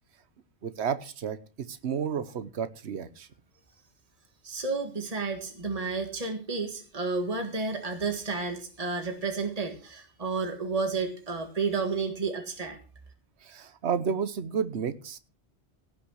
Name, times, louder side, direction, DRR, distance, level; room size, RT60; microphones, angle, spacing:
voice 1, 0.6-3.3 13.4-15.2, right 7 dB, 75° right, 13 dB, 1.2 m, -31 dB
voice 2, 4.4-12.8, right 4 dB, 35° right, 4 dB, 1.9 m, -31 dB
17.0 x 6.0 x 6.4 m, 0.36 s
omnidirectional pair, 1.1 m